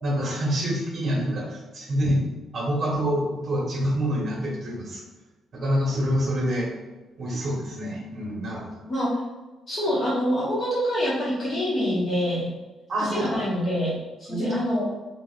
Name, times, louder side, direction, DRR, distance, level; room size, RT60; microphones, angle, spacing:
voice 1, 0.0-2.3 2.5-5.0 5.5-6.7 7.2-8.8 12.9-13.5 14.3-14.6, equal, 35° right, -2 dB, 1.3 m, -26 dB
voice 2, 9.7-12.5 13.0-13.9 14.2-14.9, equal, 35° left, -7 dB, 1.4 m, -26 dB
4.9 x 3.7 x 2.5 m, 1.2 s
cardioid pair, 165°, 0 cm